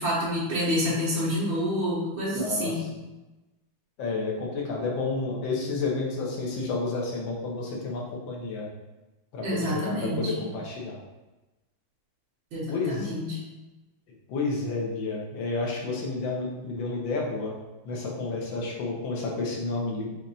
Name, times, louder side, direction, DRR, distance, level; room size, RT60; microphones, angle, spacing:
voice 1, 0.0-2.8 9.4-10.3 12.5-13.4, equal, 85° right, -9 dB, 1.8 m, -28 dB
voice 2, 2.3-3.0 4.0-8.7 9.3-11.0 12.7-13.1 14.3-17.5 17.9-20.2, left 3 dB, 80° left, -2 dB, 1.6 m, -30 dB
5.6 x 3.1 x 2.7 m, 1.1 s
omnidirectional pair, 2.1 m